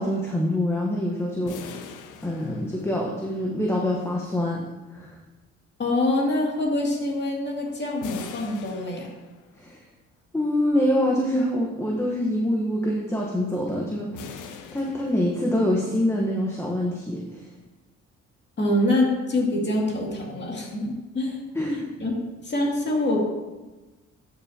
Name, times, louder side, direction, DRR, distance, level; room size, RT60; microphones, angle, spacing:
voice 1, 0.0-1.9 2.2-4.6 4.9-5.1 9.6-9.8 10.3-17.5 20.6-20.7 21.5-21.9, left 1 dB, 10° left, -2 dB, 1.1 m, -25 dB
sound 1, 1.5-3.3 8.0-9.7 14.1-15.8, left 6 dB, 90° left, 0.7 m, -42 dB
voice 2, 5.8-9.1 18.6-21.4 22.0-22.2 22.4-23.2, left 1 dB, 35° left, -2 dB, 2.3 m, -25 dB
11.5 x 5.9 x 2.8 m, 1.2 s
cardioid pair, 90°, 30 cm